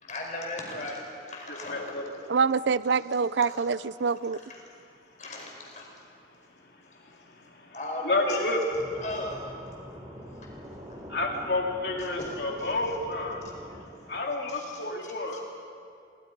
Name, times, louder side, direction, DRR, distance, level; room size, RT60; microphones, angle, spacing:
voice 1, 0.0-2.0 3.4-3.6 4.5-4.6 5.2-5.9 7.7-8.4 9.0-9.5 10.4-10.5 10.9-11.0 12.2-12.3 12.6-12.7 13.8-14.0 14.5-14.8, left 1 dB, 45° left, 0 dB, 5.1 m, -37 dB
voice 2, 1.5-2.0 8.0-8.6 11.1-13.4 14.1-15.4, left 2 dB, 65° left, 1 dB, 2.8 m, -29 dB
voice 3, 2.3-4.4, right 5 dB, 80° right, 18 dB, 0.5 m, -25 dB
sound 1, 8.7-13.9, equal, 20° right, 3.4 m, -44 dB
29.5 x 24.0 x 5.4 m, 2.3 s
head